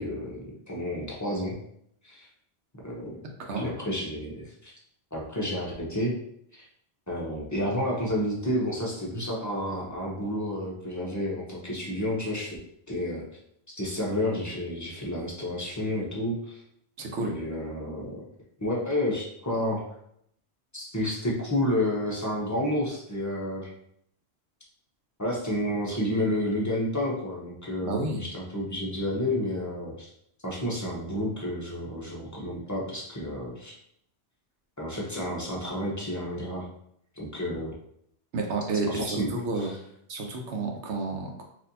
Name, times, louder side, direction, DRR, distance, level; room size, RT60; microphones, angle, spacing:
voice 1, 0.0-1.6 2.0-2.3 2.8-3.2 3.6-4.7 5.1-6.1 6.5-6.7 7.1-12.6 12.9-13.2 13.7-16.6 17.2-18.2 18.6-19.8 20.7-23.7 25.2-30.1 30.4-33.7 34.8-36.7 37.2-37.7 38.9-39.7, left 1 dB, 20° left, -4 dB, 0.7 m, -30 dB
voice 2, 3.4-3.7 17.0-17.3 27.8-28.3 38.3-39.7 40.1-41.4, right 3 dB, 90° right, 2 dB, 1.0 m, -30 dB
4.2 x 2.7 x 2.7 m, 0.71 s
omnidirectional pair, 1.1 m